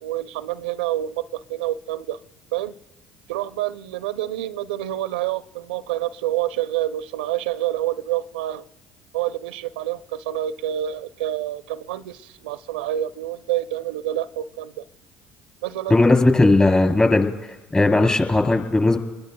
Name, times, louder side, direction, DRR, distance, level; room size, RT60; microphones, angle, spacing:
voice 1, 0.0-2.2 2.5-2.7 3.3-8.6 9.1-14.7 15.6-16.0, right 13 dB, 85° right, 13 dB, 0.5 m, -27 dB
voice 2, 15.9-17.3 17.7-19.0, left 2 dB, 20° left, 4 dB, 3.1 m, -17 dB
29.0 x 21.0 x 2.2 m, 1.2 s
hypercardioid pair, 70°, 5 cm